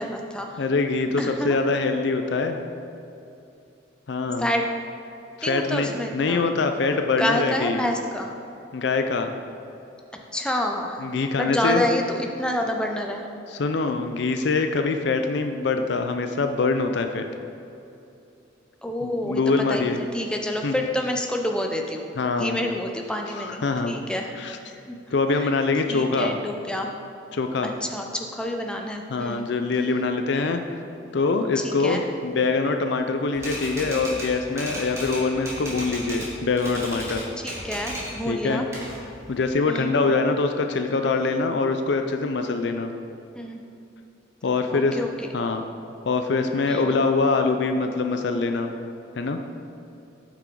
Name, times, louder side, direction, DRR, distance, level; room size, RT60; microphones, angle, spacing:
voice 1, 0.0-0.6 1.2-1.6 4.4-4.6 5.4-6.5 7.2-8.3 10.3-13.3 18.8-19.4 19.7-22.0 22.4-25.0 25.3-25.5 25.9-26.9 27.6-29.5 31.6-32.0 37.4-38.7 39.6-40.0 43.3-43.6 44.7-45.3 46.7-47.0, left 1 dB, 5° left, 2 dB, 0.6 m, -28 dB
voice 2, 0.6-2.6 4.1-4.4 5.4-7.8 8.7-9.3 11.0-11.8 13.5-17.3 19.0-20.0 20.6-20.8 22.2-22.6 23.4-23.9 24.4-24.6 25.1-26.4 27.3-27.7 29.1-30.6 31.1-37.2 38.3-38.6 39.3-42.9 44.4-45.0 45.3-45.6 46.1-48.7 49.2-49.4, left 3 dB, 60° left, 6 dB, 0.4 m, -24 dB
Typewriter, 33.3-36.3 36.6-38.2 38.5-39.5, equal, 15° right, 1.6 m, -34 dB
8.2 x 6.1 x 4.6 m, 2.8 s
head